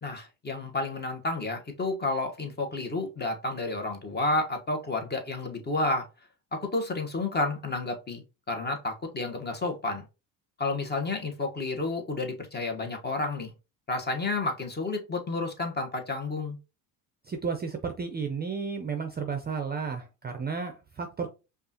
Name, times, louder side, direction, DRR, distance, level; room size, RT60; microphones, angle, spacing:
voice 1, 0.0-6.1 6.5-10.0 10.6-13.5 13.9-16.6, left 2 dB, 25° left, 1.1 m, -31 dB
voice 2, 17.2-21.3, right 5 dB, 25° right, 0.6 m, -33 dB
5.1 x 2.5 x 2.8 m
supercardioid pair, 80°, 43 cm